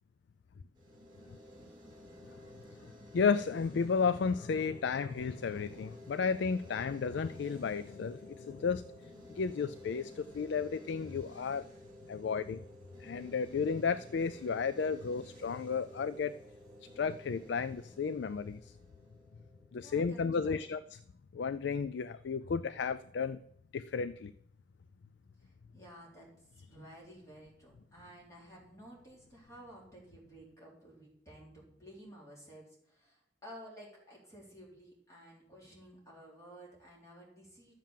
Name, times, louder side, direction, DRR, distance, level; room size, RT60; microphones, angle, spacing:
sound 1, 0.7-19.8, left 1 dB, 25° right, 3.4 m, -53 dB
voice 1, 3.1-11.7 12.1-12.6 13.0-16.4 17.0-18.7 19.7-20.8 21.3-23.4 23.7-24.3, left 5 dB, 70° left, 16 dB, 0.4 m, -33 dB
voice 2, 19.7-20.7 25.4-37.7, equal, 15° left, -4 dB, 3.9 m, -54 dB
12.0 x 7.4 x 7.4 m, 0.72 s
head